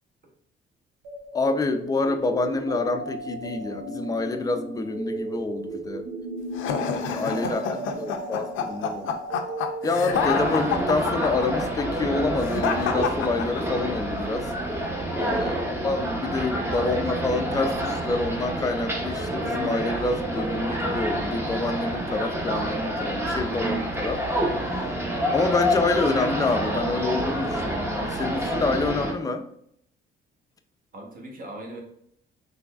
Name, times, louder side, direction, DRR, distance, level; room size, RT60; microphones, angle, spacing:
sound 1, 1.0-12.9, right 2 dB, 90° right, 0.8 m, -36 dB
voice 1, 1.3-6.1 6.7-9.2 9.8-14.5 15.2-24.2 25.3-29.4, left 3 dB, 20° left, 7 dB, 0.4 m, -27 dB
sound 2, 6.6-14.0, left 7 dB, 80° left, 0.5 m, -29 dB
voice 2, 7.2-8.1 30.9-31.8, right 1 dB, 45° right, 0 dB, 1.1 m, -40 dB
sound 3, 10.1-29.1, equal, 10° right, 0.7 m, -28 dB
3.8 x 3.2 x 2.4 m, 0.70 s
cardioid pair, 90°, 20 cm